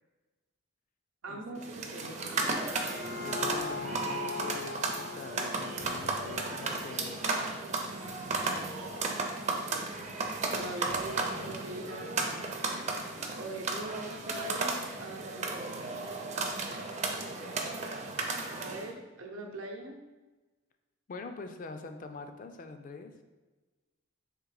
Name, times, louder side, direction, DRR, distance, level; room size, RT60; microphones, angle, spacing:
voice 1, 1.2-2.6 9.6-9.9 10.6-12.4 13.3-16.0 18.6-20.0, right 2 dB, 80° right, 1 dB, 0.7 m, -42 dB
sound 1, 1.6-18.9, right 3 dB, 35° right, 0.5 m, -34 dB
sound 2, 2.7-7.9, left 4 dB, 90° left, 1.3 m, -41 dB
Sliding door, 2.8-11.9 12.2-13.0, left 1 dB, 70° left, 0.8 m, -54 dB
voice 2, 3.2-7.3 8.8-9.1 21.1-23.1, left 4 dB, 40° left, 7 dB, 0.4 m, -44 dB
3.7 x 2.9 x 4.7 m, 1.2 s
head